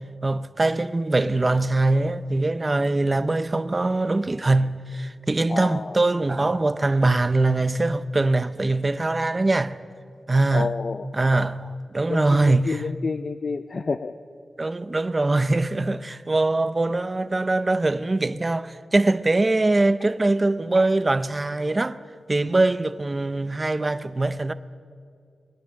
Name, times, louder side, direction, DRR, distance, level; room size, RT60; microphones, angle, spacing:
voice 1, 0.2-9.8 10.3-10.7 11.1-12.9 14.6-22.0 22.3-24.5, right 2 dB, 20° right, 0.7 m, -22 dB
voice 2, 5.5-5.8 10.5-11.0 12.1-14.1, left 4 dB, 40° left, 0.5 m, -29 dB
29.0 x 21.5 x 6.5 m
wide cardioid pair, 175°, 0 cm